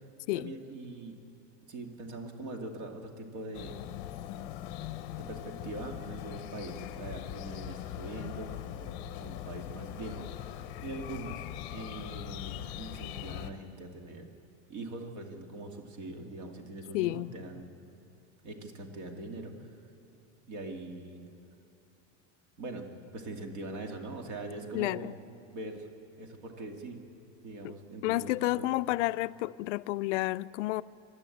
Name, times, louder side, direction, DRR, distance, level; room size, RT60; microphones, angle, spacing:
voice 1, 0.3-1.2 1.7-3.8 5.2-14.3 14.7-17.7 18.4-19.5 20.5-21.2 22.6-22.9 23.1-25.2 25.5-25.9 26.2-27.0 27.4-29.0, right 2 dB, 45° right, 2.3 m, -42 dB
sound 1, 3.5-13.5, left 12 dB, 40° left, 0.8 m, -41 dB
voice 2, 16.9-17.3 24.7-25.1 27.6-27.7 28.0-30.8, left 18 dB, 75° left, 0.5 m, -30 dB
25.0 x 12.5 x 8.5 m
supercardioid pair, 180°, 37 cm